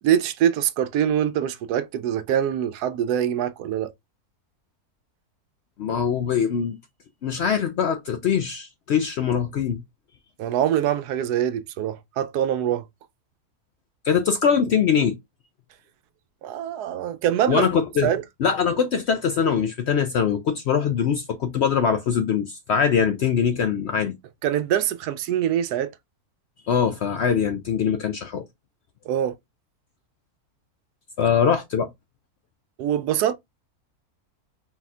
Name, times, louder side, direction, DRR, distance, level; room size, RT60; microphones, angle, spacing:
voice 1, 0.0-3.9 10.4-12.8 16.4-17.7 18.0-18.2 24.4-25.9 29.1-29.3 32.8-33.3, right 10 dB, 90° right, 1.1 m, -24 dB
voice 2, 5.8-6.8 7.2-9.8 14.0-15.2 17.5-18.1 18.4-24.2 26.7-28.4 31.2-31.9, left 7 dB, 70° left, 0.6 m, -22 dB
4.0 x 2.3 x 4.1 m
omnidirectional pair, 1.6 m